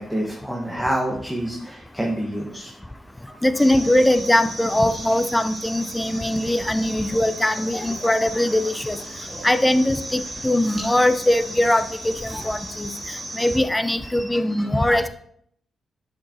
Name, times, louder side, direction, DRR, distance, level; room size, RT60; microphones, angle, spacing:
voice 1, 0.0-2.7 3.3-3.4 9.3-9.5 14.0-14.8, right 1 dB, 5° right, -1 dB, 1.3 m, -28 dB
voice 2, 3.4-9.0 9.4-12.9 13.3-15.1, left 1 dB, 15° left, 11 dB, 0.6 m, -21 dB
sound 1, 3.6-13.6, right 1 dB, 35° right, 2.6 m, -36 dB
6.7 x 5.2 x 2.8 m, 0.67 s
supercardioid pair, 45°, 0 cm